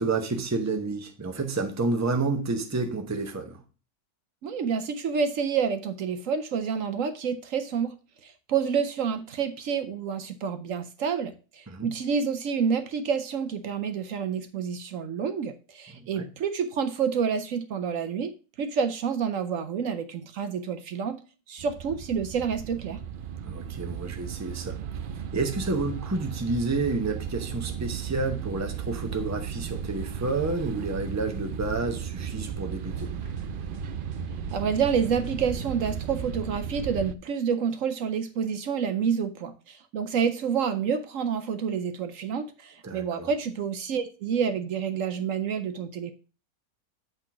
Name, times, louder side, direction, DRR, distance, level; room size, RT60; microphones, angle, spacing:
voice 1, 0.0-3.6 11.7-11.9 15.9-16.3 23.5-24.8 25.1-33.2 42.8-43.3, right 3 dB, 15° right, 0.8 m, -30 dB
voice 2, 4.4-7.9 8.2-18.3 18.6-21.2 21.5-23.0 34.5-46.1, right 6 dB, 65° right, 1.0 m, -28 dB
sound 1, 21.6-37.1, right 8 dB, 85° right, 0.4 m, -35 dB
sound 2, 32.8-36.6, equal, 45° right, 1.8 m, -44 dB
8.2 x 3.9 x 5.9 m
omnidirectional pair, 1.5 m